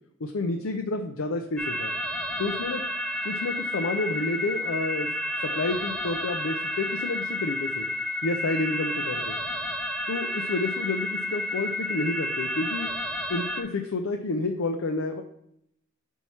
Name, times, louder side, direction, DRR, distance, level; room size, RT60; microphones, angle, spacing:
voice 1, 0.3-2.0 2.4-2.8 3.2-5.1 5.4-7.9 8.2-9.4 10.1-12.9 13.3-15.2, left 3 dB, 85° left, 4 dB, 0.5 m, -29 dB
sound 1, 1.6-13.6, left 1 dB, 5° left, 0.4 m, -31 dB
4.5 x 4.5 x 5.6 m, 0.74 s
head